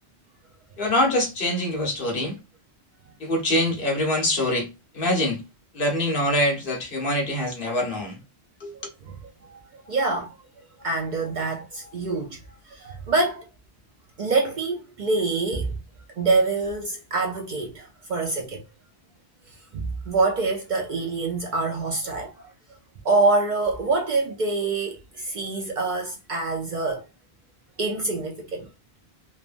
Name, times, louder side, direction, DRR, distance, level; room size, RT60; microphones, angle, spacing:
voice 1, 0.8-2.4 3.2-4.7 4.9-5.4 5.7-8.2 8.6-8.7, left 1 dB, 60° left, 1.1 m, -24 dB
voice 2, 8.7-9.2 9.5-10.4 10.8-12.4 12.7-13.5 14.2-15.7 16.2-18.6 19.5-22.5 23.0-27.1 27.8-28.7, right 3 dB, 55° right, 0.6 m, -26 dB
3.1 x 2.1 x 2.4 m
omnidirectional pair, 1.1 m